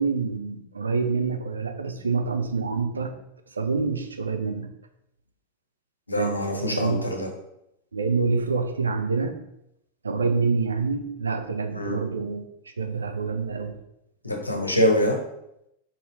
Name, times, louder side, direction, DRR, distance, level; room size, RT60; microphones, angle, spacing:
voice 1, 0.0-3.1 3.6-4.7 6.2-7.0 7.9-9.4 10.0-12.4 12.8-13.8, right 4 dB, 75° right, 6 dB, 0.5 m, -26 dB
voice 2, 6.1-7.3 11.7-12.0 14.2-15.2, left 1 dB, 85° left, 2 dB, 0.8 m, -24 dB
4.1 x 3.9 x 3.1 m, 0.81 s
figure-of-eight pair, 90°, 0 cm